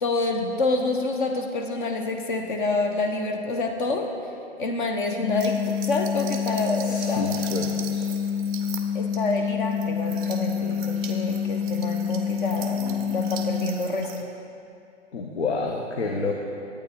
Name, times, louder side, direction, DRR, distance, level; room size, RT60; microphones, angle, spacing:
voice 1, 0.0-4.1 4.6-7.4 8.9-14.1, left 2 dB, 45° left, 4 dB, 1.0 m, -27 dB
sound 1, 5.2-13.7, left 7 dB, 30° left, 0.6 m, -27 dB
sound 2, 5.4-14.2, right 8 dB, 15° right, 0.5 m, -41 dB
voice 2, 6.8-8.0 15.1-16.3, left 3 dB, 75° left, 1 dB, 1.1 m, -29 dB
11.0 x 8.6 x 4.4 m, 2.6 s
hypercardioid pair, 130°, 34 cm